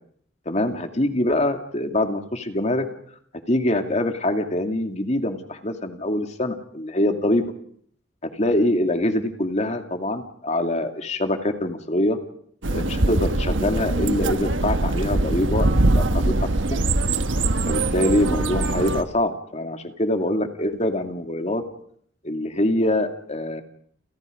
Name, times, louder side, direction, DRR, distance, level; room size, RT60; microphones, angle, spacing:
voice 1, 0.5-2.9 3.5-7.4 8.2-12.2 12.7-16.8 17.7-21.6 22.2-23.6, left 1 dB, 35° left, 5 dB, 2.5 m, -24 dB
sound 1, 12.6-19.0, right 2 dB, 80° right, 1.3 m, -22 dB
29.5 x 29.5 x 5.2 m, 0.66 s
head